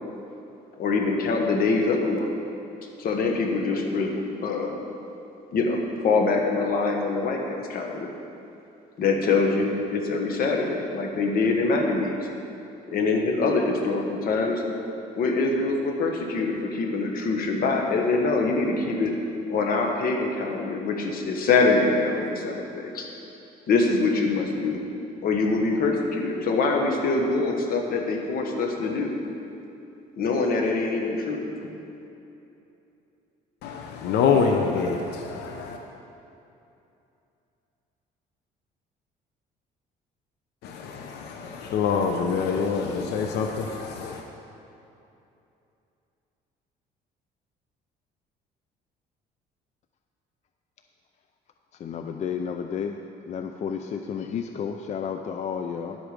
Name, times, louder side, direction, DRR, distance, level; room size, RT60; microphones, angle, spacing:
voice 1, 0.8-2.3 3.0-4.7 5.5-8.1 9.0-12.3 12.9-14.6 15.2-19.1 19.5-23.1 23.7-24.8 25.2-29.1 30.2-31.4, left 3 dB, 60° left, 2 dB, 1.5 m, -24 dB
voice 2, 33.6-35.8 40.6-44.2, left 5 dB, 80° left, 3 dB, 0.8 m, -26 dB
voice 3, 51.8-53.0 53.3-56.0, left 7 dB, 45° left, 5 dB, 0.5 m, -31 dB
11.0 x 8.2 x 5.1 m, 2.8 s
cardioid pair, 110°, 17 cm